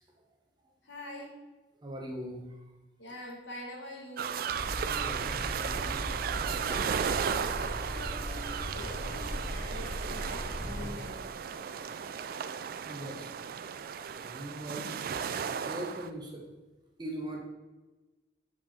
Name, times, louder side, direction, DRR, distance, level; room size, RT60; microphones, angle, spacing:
voice 1, 0.8-1.4 3.0-4.4 6.6-11.4, left 1 dB, 85° left, -1 dB, 1.7 m, -45 dB
voice 2, 1.8-2.4 4.8-6.0 12.8-13.3 14.2-14.9 15.6-16.5 17.0-17.4, right 1 dB, 25° right, 0 dB, 1.1 m, -40 dB
sound 1, 4.2-16.1, right 7 dB, 55° right, 0.3 m, -35 dB
sound 2, 4.5-10.9, equal, 20° left, 0.9 m, -38 dB
6.0 x 5.3 x 4.3 m, 1.1 s
head